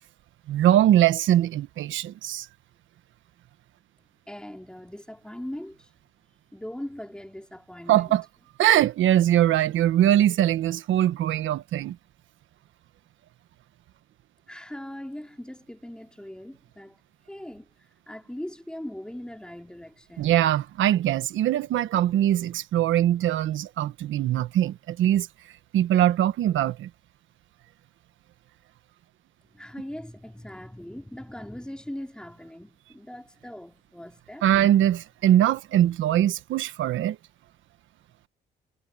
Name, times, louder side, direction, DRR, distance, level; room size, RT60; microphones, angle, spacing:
voice 1, 0.5-2.5 7.9-8.2 8.6-12.0 20.2-25.3 25.7-26.9 34.4-37.2, right 12 dB, 80° right, 1.2 m, -22 dB
voice 2, 4.3-5.9 6.5-8.2 14.5-17.0 17.3-17.7 18.1-20.4 29.5-34.5, left 1 dB, 5° left, 3.8 m, -40 dB
cardioid pair, 90°, 20 cm